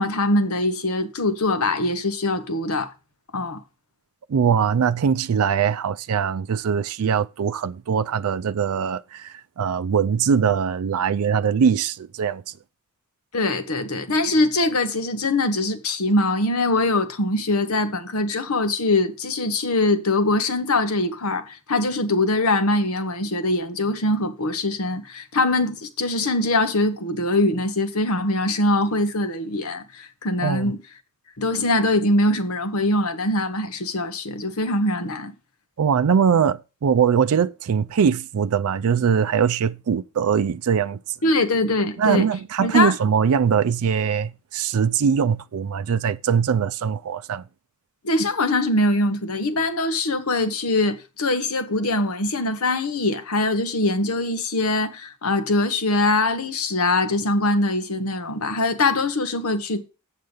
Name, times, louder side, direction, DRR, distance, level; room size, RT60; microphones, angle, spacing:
voice 1, 0.0-2.9 3.3-3.6 13.3-30.8 31.4-35.3 41.2-42.3 42.6-42.9 48.0-59.8, left 2 dB, 70° left, 1.1 m, -22 dB
voice 2, 4.3-12.4 30.4-30.7 35.8-41.0 42.0-47.4, right 7 dB, 70° right, 0.4 m, -21 dB
8.0 x 6.6 x 5.3 m
head